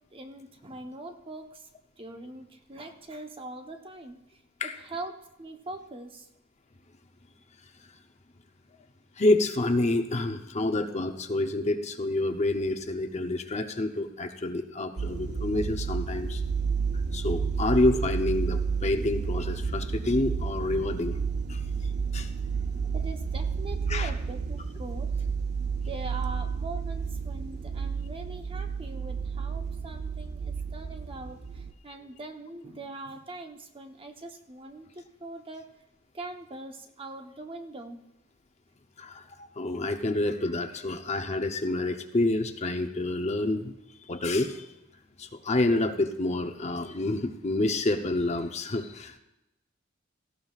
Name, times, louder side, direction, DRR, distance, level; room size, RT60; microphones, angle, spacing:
voice 1, 0.1-1.7 2.0-6.3 22.0-22.2 22.9-25.1 25.8-35.7 36.1-38.0, right 2 dB, 25° right, 5 dB, 0.9 m, -42 dB
voice 2, 9.2-16.4 17.1-21.2 21.5-21.6 22.1-22.3 23.9-24.1 39.0-43.7 44.1-44.7 45.2-49.2, left 2 dB, 35° left, 6 dB, 0.7 m, -28 dB
sound 1, 15.0-31.7, right 5 dB, 55° right, 0.6 m, -31 dB
17.5 x 15.5 x 2.4 m, 0.93 s
head